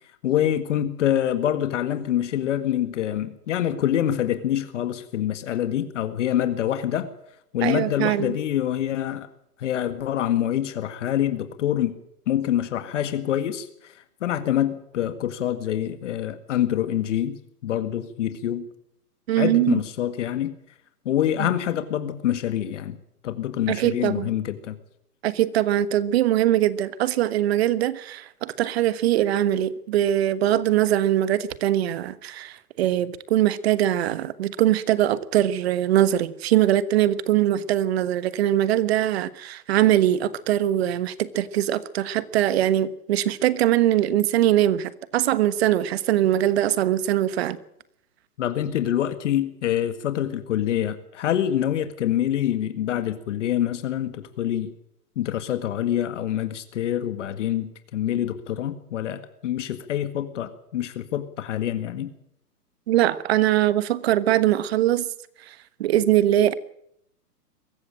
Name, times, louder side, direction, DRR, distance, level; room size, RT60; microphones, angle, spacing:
voice 1, 0.2-7.1 7.5-9.3 9.6-12.0 12.3-18.7 19.4-20.6 21.1-23.0 23.2-24.8 48.4-54.7 55.2-62.1, left 11 dB, 50° left, 1.9 m, -26 dB
voice 2, 7.6-8.3 19.3-19.8 21.4-21.5 23.7-24.3 25.2-47.6 62.9-65.1 65.8-66.6, right 12 dB, 40° right, 1.3 m, -22 dB
23.0 x 14.5 x 8.9 m
hypercardioid pair, 150°, 47 cm